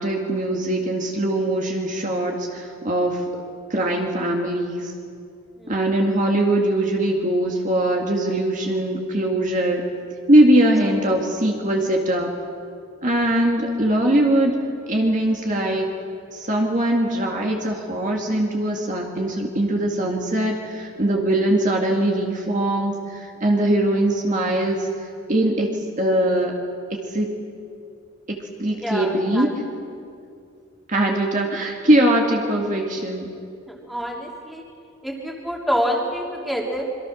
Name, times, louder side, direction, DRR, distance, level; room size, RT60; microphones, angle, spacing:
voice 1, 0.0-3.2 3.7-4.9 5.7-9.8 10.3-12.3 13.0-14.6 14.9-15.9 16.3-26.5 27.1-27.3 28.3-29.6 30.9-33.3, right 1 dB, 40° right, 0 dB, 2.2 m, -21 dB
voice 2, 28.8-29.5 33.7-34.6 35.0-36.9, equal, ahead, -2 dB, 3.1 m, -27 dB
27.0 x 23.5 x 6.4 m, 2.4 s
head